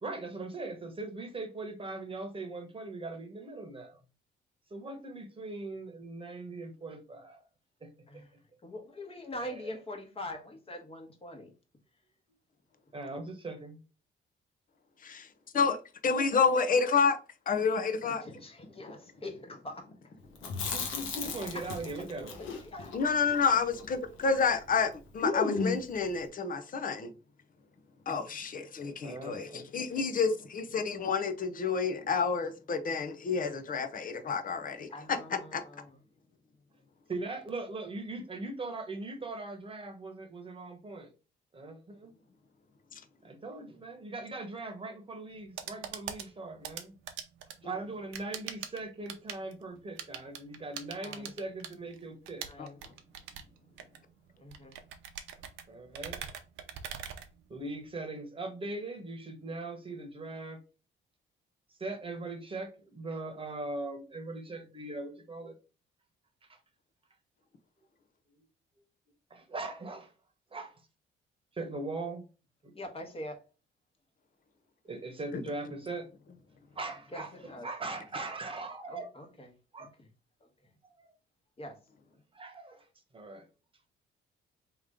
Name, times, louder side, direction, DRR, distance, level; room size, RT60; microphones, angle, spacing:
voice 1, 0.0-4.0 4.7-7.4 7.8-8.2 9.4-9.8 12.9-13.8 20.6-22.4 29.0-29.6 37.1-41.1 41.5-42.1 43.2-47.0 47.6-52.4 55.7-56.2 57.5-60.6 61.8-65.6 66.5-66.6 68.3-68.4 69.3-70.1 70.5-70.8 71.5-72.3 72.6-72.8 74.8-76.1 76.7-77.3 77.6-79.3 79.7-79.9 81.0-81.1 82.3-82.9 83.1-83.4, right 2 dB, 25° right, 1.2 m, -40 dB
voice 2, 8.6-11.5 18.2-19.9 20.5-20.6 21.5-21.6 22.0-23.0 34.9-35.9 51.0-51.3 52.4-52.7 54.4-54.8 72.7-73.4 77.1-77.7 78.9-79.5 79.8-80.1 80.4-80.7 81.6-81.8, left 1 dB, 30° left, 1.3 m, -44 dB
voice 3, 16.0-17.2 17.5-18.2 20.4-20.5 22.9-27.1 28.1-35.2 35.5-35.6 52.6-52.7, left 5 dB, 45° left, 0.8 m, -29 dB
Chewing mastication, 20.4-24.5 24.8-24.9 25.2-26.0, left 4 dB, 80° left, 1.1 m, -35 dB
sound 1, 45.3-57.9, right 8 dB, 85° right, 0.7 m, -44 dB
3.6 x 3.0 x 3.6 m
cardioid pair, 90°, 20 cm